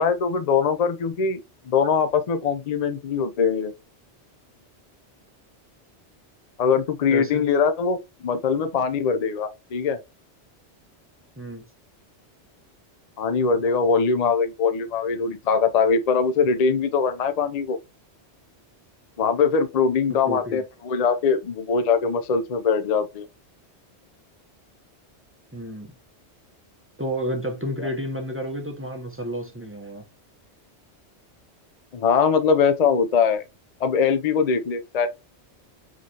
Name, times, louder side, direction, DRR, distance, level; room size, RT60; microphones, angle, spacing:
voice 1, 0.0-1.4 1.7-3.7 6.6-10.0 13.2-17.8 19.2-23.3 31.9-33.4 33.8-35.1, left 5 dB, 50° left, 0.5 m, -22 dB
voice 2, 7.1-7.5 11.4-11.6 20.1-20.6 25.5-25.9 27.0-30.0, equal, 15° right, 0.6 m, -31 dB
4.9 x 3.1 x 2.7 m
omnidirectional pair, 1.2 m